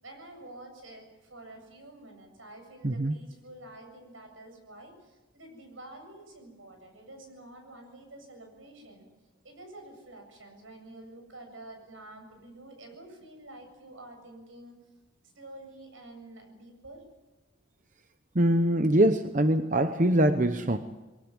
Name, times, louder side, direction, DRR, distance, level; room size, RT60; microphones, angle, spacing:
voice 1, 0.0-9.1 9.4-14.7 15.3-17.0, right 1 dB, 85° right, 5 dB, 7.7 m, -48 dB
voice 2, 2.8-3.1 18.3-20.8, right 1 dB, 40° right, 8 dB, 0.9 m, -23 dB
23.5 x 18.0 x 9.7 m, 1.1 s
head